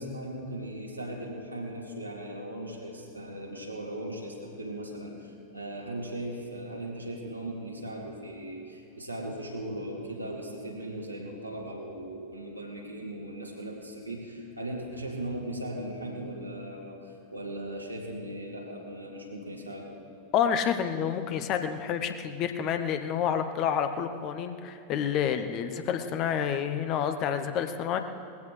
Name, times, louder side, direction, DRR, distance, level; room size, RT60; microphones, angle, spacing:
voice 1, 0.0-20.0, right 1 dB, 85° right, -2 dB, 2.4 m, -38 dB
voice 2, 20.3-28.0, left 8 dB, 40° left, 8 dB, 0.9 m, -29 dB
20.0 x 15.5 x 3.3 m, 2.8 s
figure-of-eight pair, 90°, 0 cm